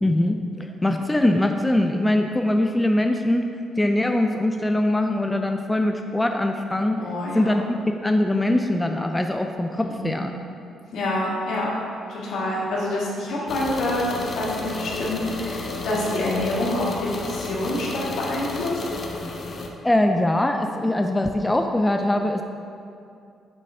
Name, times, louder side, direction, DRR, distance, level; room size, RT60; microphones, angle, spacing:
voice 1, 0.0-3.5 3.8-7.0 7.3-7.8 8.0-10.3 19.8-22.4, left 1 dB, 10° left, 4 dB, 0.3 m, -22 dB
voice 2, 7.0-7.5 9.9-10.3 10.9-11.7 12.1-18.8, left 1 dB, 75° left, -5 dB, 1.6 m, -27 dB
sound 1, 13.5-19.7, left 3 dB, 45° left, 0.7 m, -32 dB
7.5 x 3.3 x 5.4 m, 2.5 s
cardioid pair, 90°, 0 cm